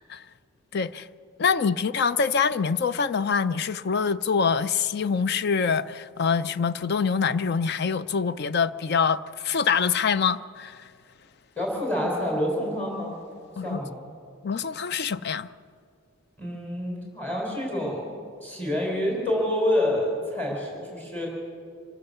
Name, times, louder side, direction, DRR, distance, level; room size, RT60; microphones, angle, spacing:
voice 1, 0.7-1.1 1.4-10.8 13.6-13.8 14.4-15.5, left 6 dB, 50° left, 0.5 m, -25 dB
voice 2, 11.6-13.2 13.6-13.9 16.4-21.3, left 1 dB, 10° left, 4.6 m, -27 dB
26.0 x 14.5 x 6.9 m
head